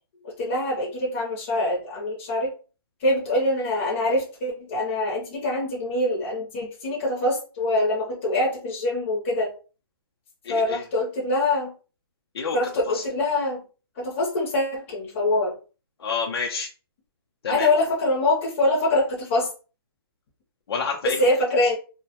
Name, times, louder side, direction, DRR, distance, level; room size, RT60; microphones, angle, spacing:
voice 1, 0.4-2.5 3.0-9.5 10.5-11.7 12.5-13.6 14.0-15.6 17.5-19.5 21.0-21.8, left 1 dB, 30° left, -3 dB, 0.6 m, -24 dB
voice 2, 10.4-10.8 12.3-12.6 12.9-13.0 16.0-16.7 17.4-17.7 20.7-21.3 21.6-21.7, left 5 dB, 90° left, 0 dB, 0.5 m, -29 dB
2.1 x 2.1 x 2.7 m, 0.35 s
hypercardioid pair, 175°, 13 cm